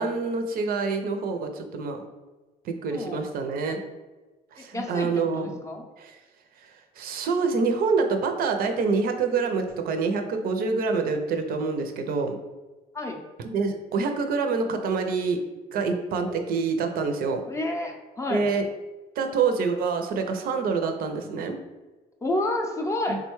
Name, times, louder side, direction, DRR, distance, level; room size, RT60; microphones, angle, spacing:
voice 1, 0.0-2.0 2.6-3.8 4.5-5.6 6.0-6.2 7.0-12.4 13.4-15.4 15.7-17.4 18.3-18.6 19.2-21.6 23.1-23.2, right 4 dB, 60° right, 5 dB, 0.5 m, -26 dB
voice 2, 2.9-3.2 4.7-5.8 12.9-13.2 16.2-16.4 17.5-18.5 22.2-23.2, left 2 dB, 15° left, 2 dB, 0.4 m, -30 dB
3.7 x 2.2 x 3.1 m, 1.2 s
cardioid pair, 110°, 17 cm